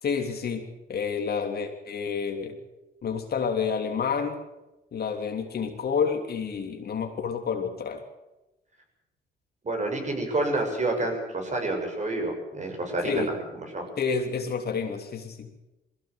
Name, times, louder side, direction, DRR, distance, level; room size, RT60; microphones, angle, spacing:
voice 1, 0.0-0.6 0.9-2.6 3.0-4.4 4.9-8.0 13.0-13.3 14.0-15.5, left 6 dB, 55° left, 4 dB, 3.2 m, -29 dB
voice 2, 9.6-13.9, right 2 dB, 35° right, 3 dB, 6.8 m, -29 dB
21.5 x 15.5 x 8.1 m, 0.99 s
cardioid pair, 90°, 20 cm